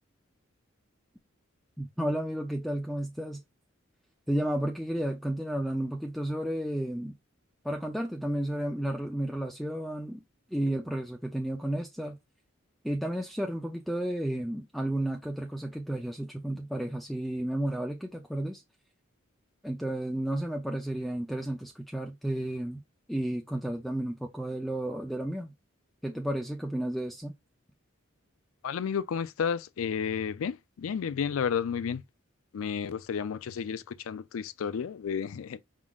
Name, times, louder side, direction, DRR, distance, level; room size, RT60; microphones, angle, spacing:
voice 1, 1.8-3.4 4.3-7.1 7.6-10.2 10.5-12.2 12.8-18.6 19.6-22.8 23.1-25.5 26.0-27.3, right 1 dB, ahead, 0.4 m, -32 dB
voice 2, 28.6-32.0 32.5-35.6, left 7 dB, 85° left, 0.4 m, -32 dB
4.8 x 3.7 x 2.4 m
head